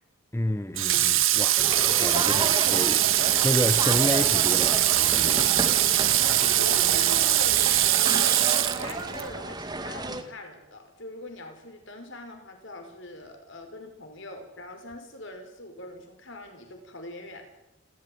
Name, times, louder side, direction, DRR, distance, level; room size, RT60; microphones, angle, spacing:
voice 1, 0.3-1.7 2.0-5.5, left 1 dB, 10° left, 0.8 m, -30 dB
Water / Water tap faucet, 0.8-9.3, right 13 dB, 60° right, 1.6 m, -22 dB
sound 1, 1.6-10.2, right 2 dB, 20° right, 1.9 m, -33 dB
voice 2, 6.5-17.6, left 1 dB, 55° left, 5.5 m, -42 dB
28.0 x 14.0 x 9.5 m
head